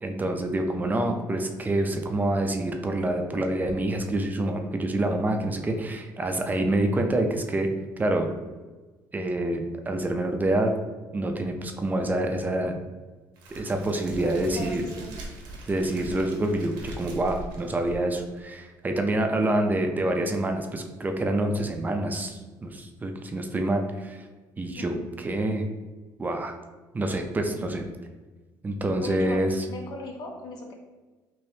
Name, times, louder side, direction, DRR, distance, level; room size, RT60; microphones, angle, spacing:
voice 1, 0.0-7.7 8.0-8.3 9.1-10.7 11.1-12.8 13.5-14.8 15.7-24.3 24.6-25.7 26.2-26.6 26.9-27.8 28.6-29.5, right 1 dB, 25° right, 4 dB, 0.4 m, -27 dB
Crackle, 13.4-18.4, right 1 dB, 85° right, 0.8 m, -41 dB
voice 2, 14.2-15.1 15.9-16.1 24.7-25.0 27.5-27.7 29.0-29.4 29.7-30.7, left 2 dB, 65° left, 2 dB, 0.7 m, -38 dB
3.3 x 3.0 x 2.7 m, 1.3 s
cardioid pair, 95°, 7 cm